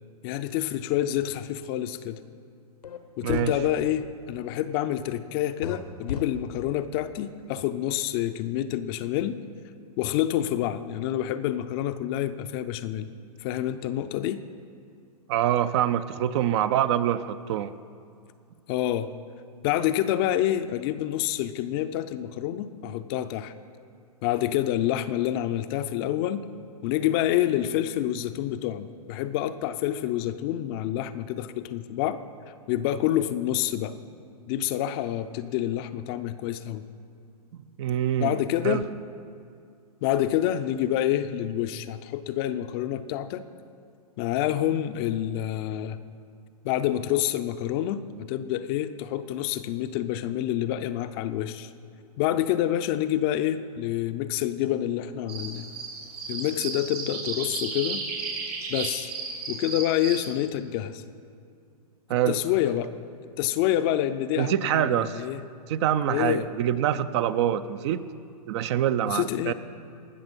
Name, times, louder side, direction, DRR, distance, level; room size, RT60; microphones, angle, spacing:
voice 1, 0.2-2.2 3.2-9.4 10.0-13.1 13.4-14.4 18.7-19.1 19.6-23.5 24.2-26.4 26.8-32.2 32.7-33.9 34.5-36.8 38.2-38.8 40.0-43.4 44.2-46.0 46.6-51.7 52.2-55.7 56.3-58.0 58.7-59.1 59.5-61.0 62.3-62.9 63.4-65.4 66.1-66.5 69.1-69.5, left 12 dB, 40° left, 11 dB, 0.5 m, -27 dB
sound 1, 2.8-3.0 3.3-3.5 5.6-5.8 6.1-6.2, left 7 dB, 80° left, 1.1 m, -32 dB
voice 2, 3.2-3.5 15.3-17.7 37.5-38.8 62.1-62.4 64.4-65.3 65.7-68.0 68.5-69.5, right 10 dB, 45° right, 13 dB, 0.5 m, -25 dB
sound 2, 55.3-60.3, right 4 dB, 75° right, 3.6 m, -34 dB
18.5 x 6.7 x 5.4 m, 2.4 s
hypercardioid pair, 115°, 20 cm